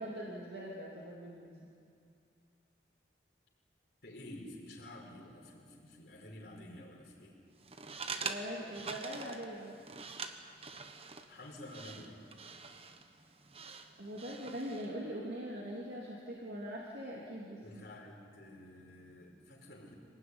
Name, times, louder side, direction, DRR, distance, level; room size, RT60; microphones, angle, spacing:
voice 1, 0.0-1.7 8.2-9.8 14.0-17.8, equal, 60° right, -3 dB, 3.1 m, -42 dB
voice 2, 4.0-7.4 11.3-12.2 17.6-19.9, left 1 dB, 70° left, -2 dB, 5.4 m, -50 dB
sound 1, 7.6-14.9, right 4 dB, 35° right, 1.2 m, -45 dB
26.0 x 18.5 x 9.9 m, 2.4 s
head